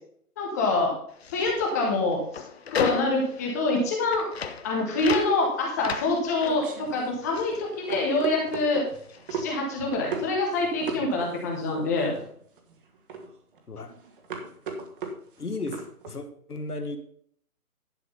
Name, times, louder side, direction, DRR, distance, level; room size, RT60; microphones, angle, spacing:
voice 1, 0.4-0.9 1.3-2.4 2.7-4.3 4.6-8.9 9.3-12.1, left 2 dB, 10° left, 0 dB, 0.9 m, -26 dB
sound 1, 1.1-8.6 8.8-10.3, left 6 dB, 45° left, 0.9 m, -36 dB
sound 2, 5.8-16.2, right 4 dB, 35° right, 1.8 m, -37 dB
voice 2, 15.4-17.0, left 2 dB, 85° left, 7 dB, 1.9 m, -34 dB
11.0 x 6.2 x 5.4 m, 0.62 s
figure-of-eight pair, 150°, 45 cm